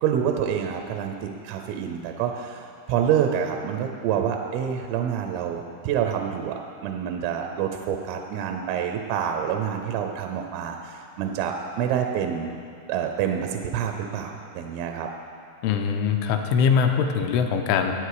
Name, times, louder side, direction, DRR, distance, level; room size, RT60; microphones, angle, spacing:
voice 1, 0.0-12.6 12.9-15.1, right 8 dB, 90° right, 4 dB, 3.3 m, -27 dB
voice 2, 15.6-17.9, left 6 dB, 85° left, 4 dB, 3.0 m, -22 dB
19.5 x 8.3 x 4.8 m, 2.5 s
omnidirectional pair, 5.7 m